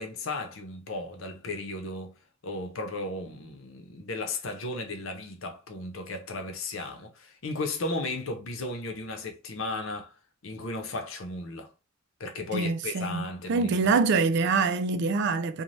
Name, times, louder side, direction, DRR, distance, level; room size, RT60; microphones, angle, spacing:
voice 1, 0.0-2.1 2.4-10.1 10.4-11.7 12.2-14.0, left 2 dB, 70° left, 0.7 m, -35 dB
voice 2, 12.5-15.6, right 4 dB, 55° right, 0.4 m, -25 dB
2.6 x 2.2 x 3.1 m
head